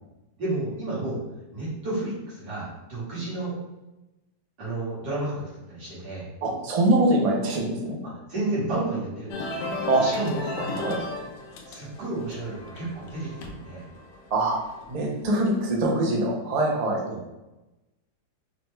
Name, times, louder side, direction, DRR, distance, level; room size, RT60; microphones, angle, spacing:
voice 1, 0.4-1.2 1.5-3.5 4.6-5.4 5.7-6.3 8.0-9.5 10.0-10.4 11.7-13.9 17.1-17.2, right 2 dB, 85° right, -9 dB, 2.3 m, -31 dB
voice 2, 6.4-8.0 9.9-10.0 10.7-11.0 14.3-14.6 14.9-17.0, right 2 dB, 65° right, -2 dB, 0.3 m, -23 dB
sound 1, 9.3-15.7, left 2 dB, 80° left, 1.3 m, -36 dB
4.9 x 2.3 x 3.1 m, 1.0 s
omnidirectional pair, 1.8 m